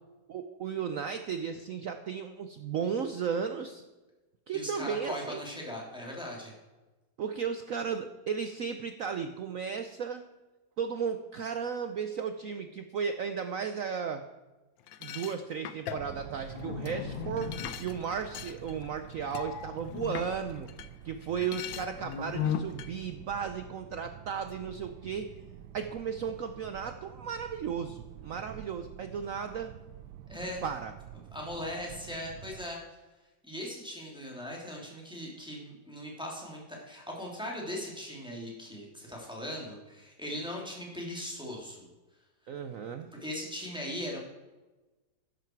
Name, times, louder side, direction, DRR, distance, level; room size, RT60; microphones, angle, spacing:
voice 1, 0.3-3.8 4.5-5.4 7.2-10.2 10.8-14.2 15.0-20.7 21.0-25.3 25.7-29.7 30.6-30.9 42.5-43.1, right 6 dB, 65° right, 8 dB, 0.8 m, -35 dB
voice 2, 4.5-6.5 30.3-30.6 31.3-32.8 33.4-41.9 43.1-44.2, left 1 dB, ahead, -2 dB, 2.9 m, -39 dB
sound 1, 14.9-20.9 21.2-22.9, left 9 dB, 80° left, 1.5 m, -38 dB
sound 2, 15.9-32.7, right 11 dB, 90° right, 1.4 m, -48 dB
13.0 x 10.5 x 4.6 m, 1.1 s
omnidirectional pair, 2.1 m